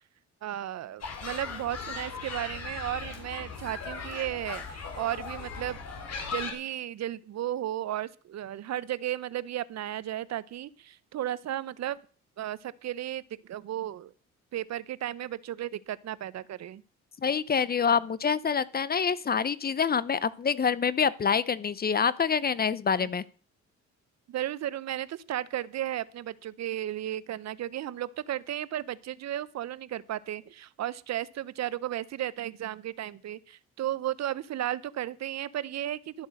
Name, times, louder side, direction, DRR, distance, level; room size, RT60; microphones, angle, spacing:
voice 1, 0.4-5.8 6.3-12.0 12.4-14.1 14.5-16.8 23.0-23.1 24.3-36.3, right 12 dB, 60° right, 18 dB, 0.7 m, -34 dB
sound 1, 1.0-6.5, left 5 dB, 55° left, 3.8 m, -38 dB
voice 2, 17.2-23.2, left 6 dB, 30° left, 18 dB, 0.6 m, -26 dB
12.5 x 8.0 x 6.4 m, 0.41 s
cardioid pair, 90°, 30 cm